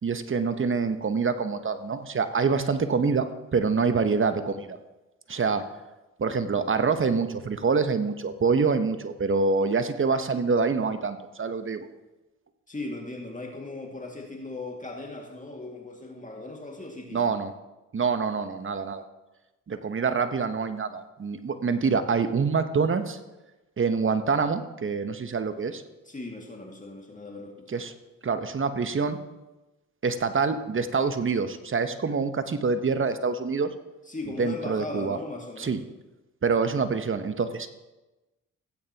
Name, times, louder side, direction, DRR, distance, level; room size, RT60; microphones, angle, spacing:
voice 1, 0.0-4.8 5.3-5.6 6.2-11.9 17.1-17.5 17.9-19.0 19.7-23.2 23.8-25.8 27.7-27.9 28.2-29.2 30.0-33.7 34.4-35.2 35.6-35.8 36.4-37.7, right 5 dB, 35° right, 10 dB, 1.0 m, -26 dB
voice 2, 12.7-17.4 26.0-27.8 34.1-35.8, left 2 dB, 25° left, 0 dB, 2.1 m, -38 dB
16.0 x 8.7 x 2.9 m, 1.1 s
supercardioid pair, 50°, 34 cm